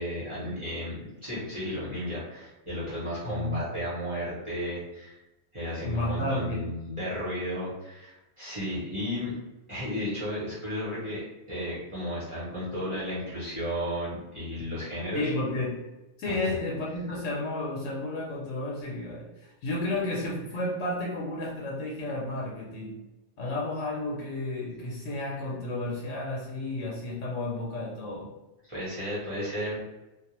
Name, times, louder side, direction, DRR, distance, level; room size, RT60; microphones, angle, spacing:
voice 1, 0.0-5.2 5.5-9.3 9.7-11.2 11.5-15.2 16.2-16.5 28.7-29.9, equal, 30° right, -9 dB, 0.8 m, -33 dB
voice 2, 3.2-3.6 5.8-6.7 15.1-15.9 16.2-23.0 23.4-28.3, left 2 dB, 80° left, -3 dB, 0.9 m, -32 dB
2.3 x 2.1 x 2.9 m, 1.0 s
omnidirectional pair, 1.3 m